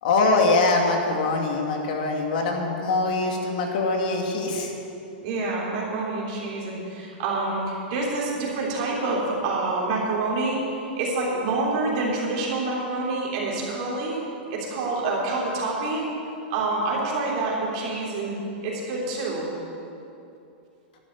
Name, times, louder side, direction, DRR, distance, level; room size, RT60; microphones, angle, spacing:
voice 1, 0.0-4.7, left 3 dB, 55° left, 1 dB, 2.2 m, -23 dB
voice 2, 5.2-14.2 14.5-16.1 16.5-18.4 18.6-19.5, right 3 dB, 40° right, -4 dB, 3.4 m, -27 dB
11.5 x 8.9 x 9.3 m, 2.7 s
supercardioid pair, 170°, 6 cm